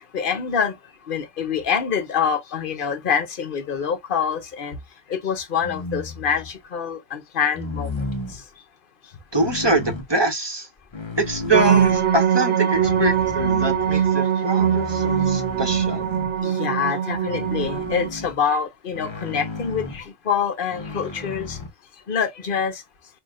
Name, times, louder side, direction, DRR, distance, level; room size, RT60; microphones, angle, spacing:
voice 1, 0.1-0.7 1.1-4.7 5.1-7.9 16.4-21.6 22.1-22.8, left 7 dB, 45° left, 1.1 m, -25 dB
sound 1, 5.6-6.6 7.5-8.4 9.3-10.1 10.8-12.2 12.8-14.0 14.6-16.5 17.3-18.4 18.9-20.1 20.7-21.7, left 2 dB, 30° left, 0.7 m, -34 dB
voice 2, 9.3-10.7 11.2-16.0, right 2 dB, 20° right, 1.1 m, -24 dB
sound 2, 11.5-18.1, right 8 dB, 65° right, 1.4 m, -21 dB
6.0 x 2.5 x 2.4 m
omnidirectional pair, 1.3 m